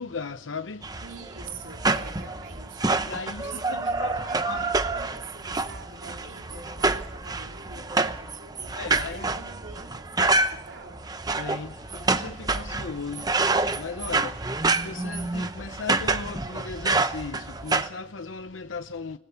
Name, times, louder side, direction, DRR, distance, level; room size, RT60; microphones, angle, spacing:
voice 1, 0.0-1.1 3.1-4.7 8.7-9.3 11.3-19.2, left 4 dB, 80° left, 0.8 m, -37 dB
sound 1, 0.8-17.9, right 3 dB, 20° right, 0.9 m, -27 dB
voice 2, 1.0-11.1, right 4 dB, 80° right, 3.0 m, -44 dB
26.0 x 20.5 x 5.7 m
head